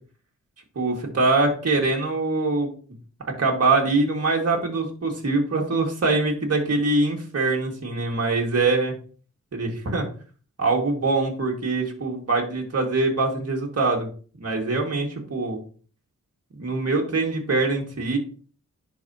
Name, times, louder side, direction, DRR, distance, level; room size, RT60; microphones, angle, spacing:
voice 1, 0.8-2.7 3.4-8.9 9.5-10.1 10.6-14.1 14.4-15.6 16.6-18.2, right 3 dB, 50° right, 0 dB, 2.0 m, -23 dB
10.5 x 4.3 x 2.9 m, 0.40 s
cardioid pair, 60°, 31 cm